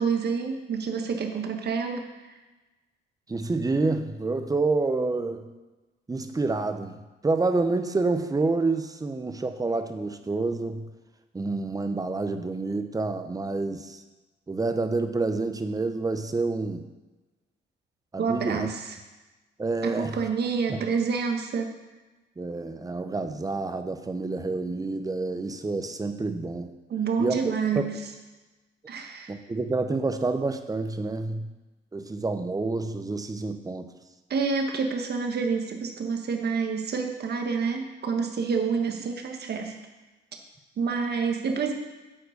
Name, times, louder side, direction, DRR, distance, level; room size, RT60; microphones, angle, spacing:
voice 1, 0.0-2.0 18.2-18.8 19.8-21.7 26.9-27.9 28.9-29.3 34.3-39.7 40.8-41.7, right 5 dB, 55° right, 4 dB, 1.3 m, -28 dB
voice 2, 3.3-5.5 6.1-10.9 11.3-14.0 14.5-16.9 18.1-18.7 19.6-20.2 20.7-20.8 22.4-26.7 27.2-27.9 29.3-31.5 31.9-33.9, right 3 dB, 20° right, 8 dB, 0.8 m, -28 dB
8.8 x 4.6 x 6.6 m, 1.1 s
cardioid pair, 90°, 20 cm